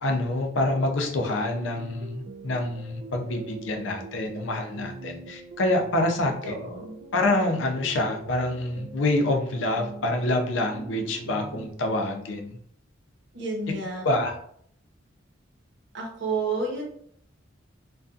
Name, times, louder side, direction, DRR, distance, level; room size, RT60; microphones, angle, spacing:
voice 1, 0.0-6.5 7.1-12.6 14.0-14.3, left 2 dB, 70° left, 3 dB, 0.5 m, -26 dB
sound 1, 0.6-11.7, right 3 dB, 80° right, 0.3 m, -43 dB
voice 2, 6.4-6.9 13.3-14.1 15.9-16.8, right 3 dB, 65° right, -1 dB, 0.8 m, -30 dB
2.6 x 2.2 x 2.3 m, 0.65 s
head